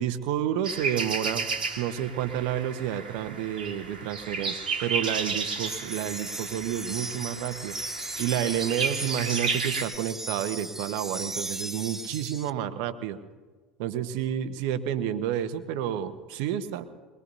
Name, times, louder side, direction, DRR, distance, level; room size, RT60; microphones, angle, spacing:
voice 1, 0.0-1.5 1.8-7.8 8.2-13.2 13.8-16.9, right 10 dB, 65° right, 11 dB, 0.9 m, -30 dB
sound 1, 0.6-9.8, right 5 dB, 90° right, 1.4 m, -33 dB
sound 2, 5.7-12.5, right 2 dB, 10° right, 0.5 m, -36 dB
23.0 x 21.0 x 2.7 m, 1.4 s
hypercardioid pair, 70°, 5 cm